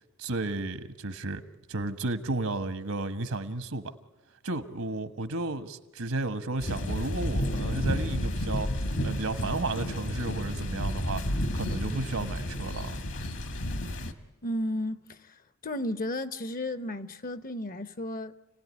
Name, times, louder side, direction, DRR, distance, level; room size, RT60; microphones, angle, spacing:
voice 1, 0.2-1.4 1.7-3.9 4.4-13.0, right 2 dB, 80° right, 1.4 m, -33 dB
sound 1, 6.6-14.1, equal, 60° left, 1.5 m, -31 dB
voice 2, 14.4-15.3 15.6-18.3, left 1 dB, 40° left, 0.8 m, -33 dB
29.0 x 17.5 x 9.7 m
head